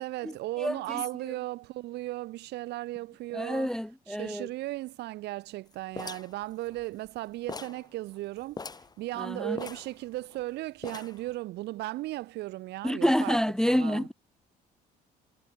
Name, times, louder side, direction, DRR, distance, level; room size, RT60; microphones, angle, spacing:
voice 1, 0.0-3.7 4.1-8.6 9.0-13.4 13.6-14.1, right 17 dB, 80° right, 6.3 m, -36 dB
voice 2, 3.3-4.5 9.2-9.6 12.8-14.1, equal, 5° left, 0.7 m, -27 dB
sound 1, 6.0-7.2 7.5-7.9 8.2-8.3 8.5-8.9 9.6-10.4 10.8-11.3, left 4 dB, 25° left, 3.4 m, -41 dB
cardioid pair, 110°, 17 cm